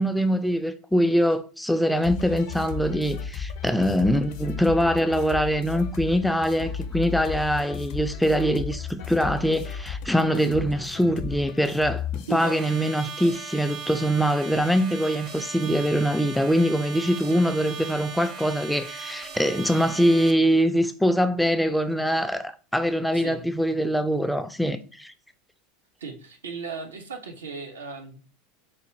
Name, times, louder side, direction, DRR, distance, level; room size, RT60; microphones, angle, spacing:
voice 1, 0.0-25.1, equal, 5° left, 0.3 m, -23 dB
sound 1, 2.0-12.6, left 7 dB, 55° left, 0.5 m, -35 dB
voice 2, 12.3-12.6 23.1-23.4 26.0-28.3, right 4 dB, 75° right, 0.6 m, -36 dB
sound 2, 12.4-20.3, right 5 dB, 45° right, 0.7 m, -38 dB
4.4 x 2.3 x 3.0 m
figure-of-eight pair, 80°, 0 cm